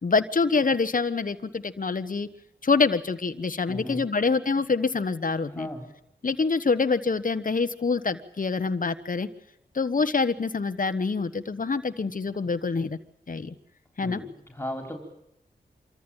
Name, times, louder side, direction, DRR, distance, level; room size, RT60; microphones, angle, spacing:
voice 1, 0.0-2.3 2.6-5.7 6.2-9.3 9.7-13.0 13.3-13.5 14.0-14.2, left 4 dB, 50° left, 10 dB, 1.3 m, -26 dB
voice 2, 3.7-4.1 5.5-5.9 14.0-15.0, left 1 dB, 15° left, 4 dB, 4.7 m, -36 dB
26.0 x 14.0 x 9.0 m, 0.79 s
cardioid pair, 40°, 18 cm